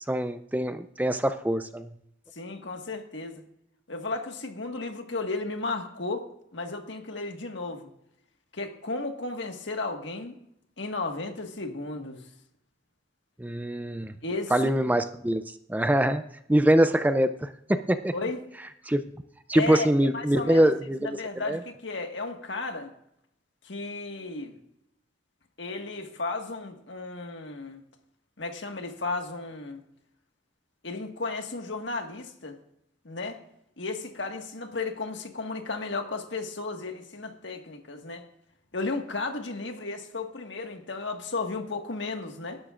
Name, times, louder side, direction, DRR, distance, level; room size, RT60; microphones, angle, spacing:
voice 1, 0.1-1.9 13.4-14.2 14.5-16.2 16.5-18.1 18.9-19.0 19.5-21.2 21.5-21.6, right 1 dB, 10° right, 10 dB, 0.4 m, -24 dB
voice 2, 2.3-3.4 3.9-6.2 6.5-7.9 8.5-10.4 10.8-12.2 14.2-14.5 18.1-18.5 19.5-19.9 20.1-20.7 21.0-22.9 23.6-24.6 25.6-27.8 28.4-29.8 30.8-32.6 33.1-33.4 33.8-38.2 38.7-42.6, left 3 dB, 70° left, 4 dB, 1.7 m, -34 dB
19.0 x 11.5 x 2.5 m, 0.76 s
head